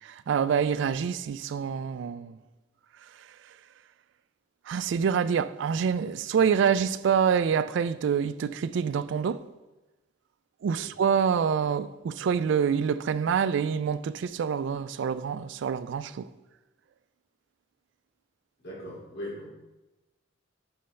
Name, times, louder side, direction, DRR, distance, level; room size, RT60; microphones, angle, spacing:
voice 1, 0.0-2.4 4.7-9.5 10.6-16.3, right 7 dB, 65° right, 0.3 m, -26 dB
voice 2, 18.6-19.5, left 1 dB, 60° left, 2.5 m, -39 dB
9.0 x 5.6 x 3.2 m
head